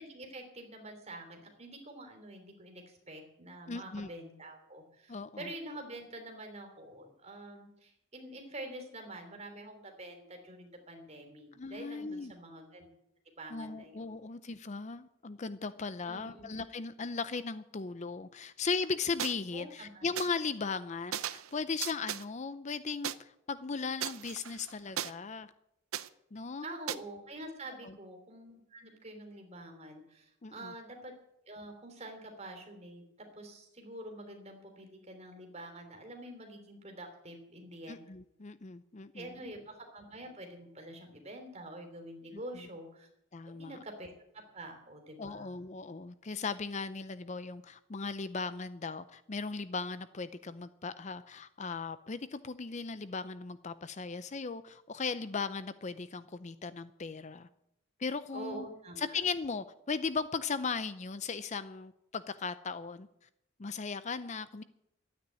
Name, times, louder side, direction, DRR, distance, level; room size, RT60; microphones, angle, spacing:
voice 1, 0.0-12.9 13.4-14.2 16.0-16.5 19.5-20.1 26.6-31.1 31.5-33.0 33.3-38.0 39.1-43.1 43.4-44.1 44.5-45.5 58.3-59.2, right 1 dB, 30° right, 4 dB, 3.2 m, -47 dB
voice 2, 3.7-4.1 5.1-5.5 11.5-12.3 13.5-25.5 26.3-26.7 27.8-28.0 30.4-30.7 37.9-39.4 42.3-42.4 43.3-43.8 45.2-57.5 58.0-58.7 59.0-63.1 63.6-64.6, left 4 dB, 35° left, 13 dB, 0.5 m, -37 dB
sound 1, 19.2-19.3 20.2-20.3 21.1-21.5 21.8-22.2 23.0-23.1 24.0-25.1 25.9-26.1 26.9-27.0, right 10 dB, 80° right, 0.7 m, -36 dB
12.5 x 9.4 x 9.7 m, 0.80 s
head